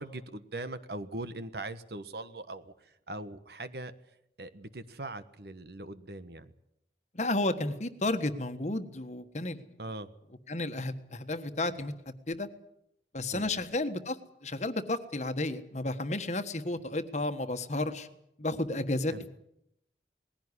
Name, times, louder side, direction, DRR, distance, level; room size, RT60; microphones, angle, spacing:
voice 1, 0.0-2.7 3.1-3.9 4.4-6.5 9.8-10.1 13.3-13.5 19.1-19.3, right 2 dB, 65° right, 12 dB, 1.4 m, -40 dB
voice 2, 7.1-9.6 10.5-12.5 13.1-18.1 18.4-19.3, left 2 dB, 40° left, 9 dB, 1.4 m, -32 dB
20.0 x 16.0 x 9.8 m, 0.78 s
head